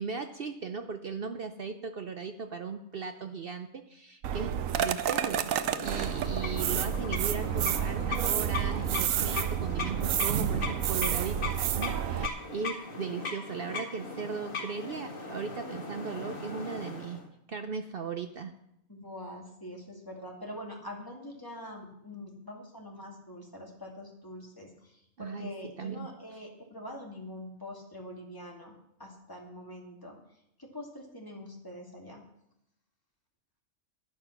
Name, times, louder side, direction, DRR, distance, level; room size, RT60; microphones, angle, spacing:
voice 1, 0.0-5.5 5.8-17.2 17.5-18.5 25.2-25.5 25.8-26.1, right 5 dB, 50° right, 8 dB, 0.8 m, -37 dB
sound 1, 4.2-12.3, right 9 dB, 80° right, 1.0 m, -30 dB
sound 2, 5.4-17.2, left 3 dB, 75° left, 2.3 m, -39 dB
voice 2, 18.9-30.2 30.6-32.2, left 1 dB, 15° left, -1 dB, 2.4 m, -44 dB
11.0 x 11.0 x 5.9 m, 0.80 s
omnidirectional pair, 1.4 m